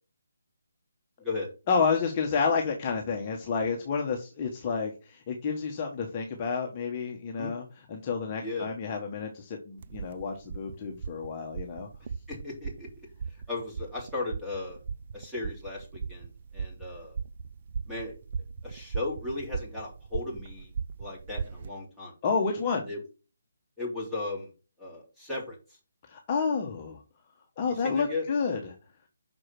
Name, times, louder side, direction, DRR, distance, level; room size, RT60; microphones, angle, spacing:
voice 1, 1.7-11.9 22.2-22.9 26.1-27.0 27.6-28.7, left 5 dB, 30° left, 1 dB, 1.2 m, -30 dB
sound 1, 9.8-21.7, right 6 dB, 45° right, 0.5 m, -38 dB
voice 2, 12.3-12.9 13.5-14.8 15.1-17.2 17.9-18.1 18.6-20.7 21.0-22.1 22.9-23.0 23.8-24.5 24.8-25.6 27.8-28.2, left 3 dB, 5° right, -5 dB, 3.1 m, -36 dB
6.2 x 4.8 x 5.9 m, 0.33 s
figure-of-eight pair, 150°, 0 cm